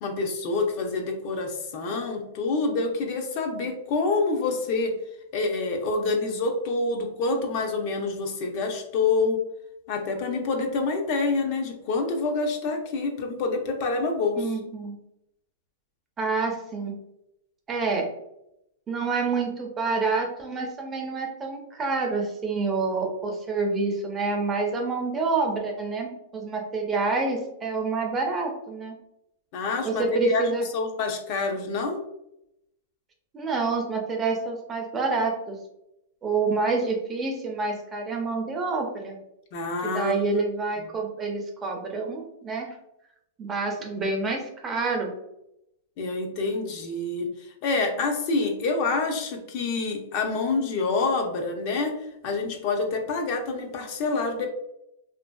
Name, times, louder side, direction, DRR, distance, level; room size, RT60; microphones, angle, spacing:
voice 1, 0.0-4.9 5.3-9.4 9.9-14.5 29.5-32.0 39.5-40.4 40.8-40.9 46.0-47.3 47.6-51.9 52.2-54.5, left 3 dB, 45° left, 3 dB, 0.5 m, -27 dB
voice 2, 14.4-15.0 16.2-16.9 17.7-18.1 18.9-29.0 29.8-30.7 33.3-35.6 36.2-39.2 39.8-42.7 43.4-45.1, right 4 dB, 15° right, 1 dB, 0.5 m, -27 dB
2.7 x 2.5 x 2.2 m, 0.82 s
supercardioid pair, 150°, 0 cm